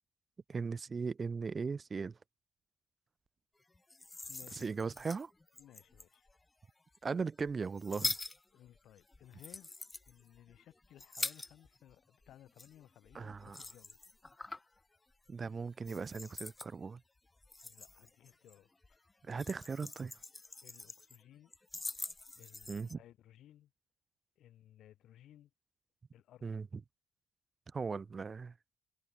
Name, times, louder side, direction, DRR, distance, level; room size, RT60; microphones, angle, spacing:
voice 1, 0.5-2.2 4.5-5.3 7.0-8.1 13.1-13.6 15.3-17.0 19.3-20.1 22.7-23.0 26.4-26.7 27.7-28.5, right 5 dB, 35° right, 0.9 m, -38 dB
sound 1, 3.7-6.3 6.9-11.9 12.2-14.8 15.1-15.4 15.8-16.7 17.3-18.5 18.8-21.2 21.5-22.9, left 2 dB, 20° left, 3.3 m, -44 dB
voice 2, 4.3-4.8 5.6-6.3 8.5-9.8 10.1-14.0 14.5-14.6 17.6-18.7 20.6-21.5 22.4-23.7 24.4-25.5 26.1-26.6, left 12 dB, 75° left, 7.3 m, -59 dB
cardioid pair, 90°, 0 cm